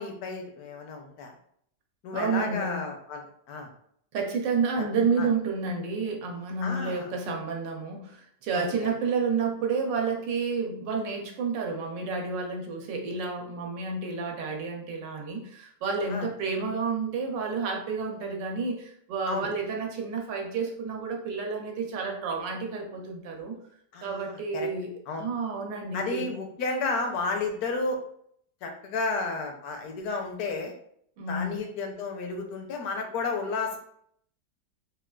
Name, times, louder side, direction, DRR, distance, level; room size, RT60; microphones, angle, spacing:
voice 1, 0.0-1.3 2.0-3.7 5.2-5.3 6.6-7.1 8.5-8.6 16.1-16.2 19.3-19.5 23.9-24.7 25.1-25.3 25.9-28.0 28.6-30.7 31.3-33.8, left 3 dB, 70° left, 3 dB, 1.0 m, -32 dB
voice 2, 2.1-2.8 4.1-23.6 24.0-26.3 31.2-31.6, right 4 dB, 85° right, 1 dB, 1.3 m, -30 dB
3.8 x 2.2 x 2.2 m, 0.67 s
omnidirectional pair, 1.9 m